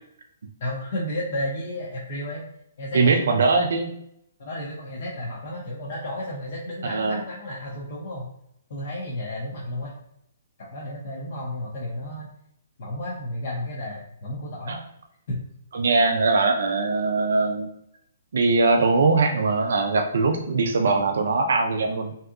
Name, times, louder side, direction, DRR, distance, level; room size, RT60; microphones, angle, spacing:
voice 1, 0.6-2.4 2.8-3.1 4.4-8.3 8.7-9.9 10.6-12.3 12.8-14.8 15.3-15.4, left 1 dB, 40° left, -4 dB, 0.5 m, -32 dB
voice 2, 2.9-3.9 6.9-7.2 14.7-14.8 15.7-17.7 18.3-22.1, right 3 dB, 60° right, 4 dB, 0.4 m, -21 dB
3.4 x 2.7 x 2.4 m, 0.74 s
hypercardioid pair, 175°, 0 cm